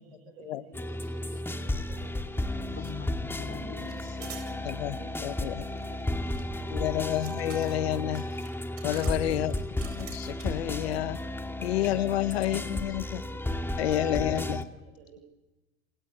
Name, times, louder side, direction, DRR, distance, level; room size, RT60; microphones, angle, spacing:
voice 1, 0.0-2.8 3.9-8.0 10.0-10.9 13.1-13.7 14.7-15.2, right 6 dB, 80° right, 2 dB, 6.3 m, -54 dB
sound 1, 0.7-14.6, left 1 dB, 5° left, 2.4 m, -33 dB
sound 2, 2.0-2.1 2.4-3.1 3.8-4.5 5.8-10.7, right 9 dB, 50° right, 7.9 m, -48 dB
voice 2, 2.7-4.6 11.7-12.0, left 6 dB, 40° left, 2 dB, 4.6 m, -43 dB
voice 3, 4.6-5.6 6.7-8.2 8.8-9.5 10.0-11.2 11.6-13.2 13.8-14.7, left 13 dB, 85° left, 14 dB, 1.1 m, -29 dB
29.0 x 16.5 x 9.8 m, 1.1 s
hypercardioid pair, 90°, 31 cm